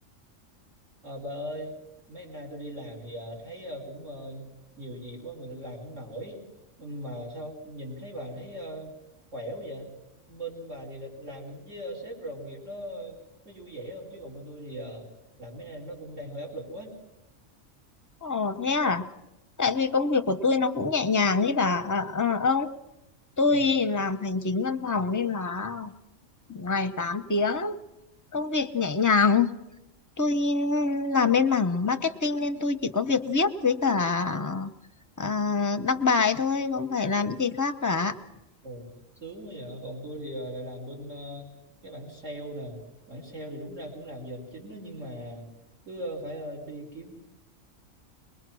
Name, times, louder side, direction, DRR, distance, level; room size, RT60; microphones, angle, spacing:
voice 1, 1.0-1.7 2.1-4.5 4.8-6.4 6.8-8.9 9.3-9.9 10.3-13.2 13.4-15.1 15.4-16.9 23.5-23.7 38.6-38.9 39.2-41.5 41.8-42.8 43.1-45.5 45.8-47.1, equal, 70° right, 0 dB, 4.6 m, -39 dB
voice 2, 18.2-19.1 19.6-22.7 23.4-25.9 26.5-27.8 28.3-29.5 30.2-34.7 35.2-38.1, left 4 dB, 20° left, 8 dB, 0.6 m, -25 dB
22.5 x 21.0 x 6.2 m, 0.92 s
omnidirectional pair, 1.3 m